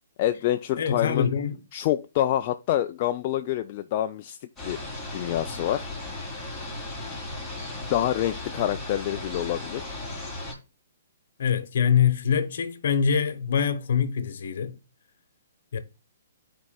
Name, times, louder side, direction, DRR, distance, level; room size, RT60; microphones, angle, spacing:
voice 1, 0.2-1.3 1.7-4.4 4.6-4.8 5.1-5.9 7.8-9.9, left 12 dB, 40° left, 0.3 m, -27 dB
voice 2, 0.8-1.6 11.4-14.8 15.7-15.8, left 7 dB, 65° left, 0.9 m, -24 dB
sound 1, 4.6-10.5, left 2 dB, 5° left, 2.5 m, -36 dB
11.0 x 4.5 x 2.2 m
hypercardioid pair, 130°, 0 cm